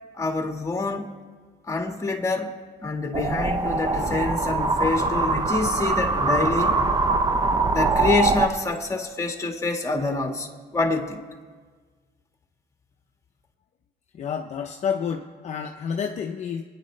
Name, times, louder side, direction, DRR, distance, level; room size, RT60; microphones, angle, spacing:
voice 1, 0.2-1.1 1.7-2.5 2.8-7.2 7.7-11.2, left 3 dB, 20° left, 3 dB, 1.7 m, -26 dB
sound 1, 3.1-8.5, right 3 dB, 25° right, 0.7 m, -23 dB
voice 2, 14.1-16.6, left 7 dB, 45° left, 3 dB, 0.7 m, -29 dB
26.5 x 9.9 x 3.3 m, 1.5 s
cardioid pair, 110°, 17 cm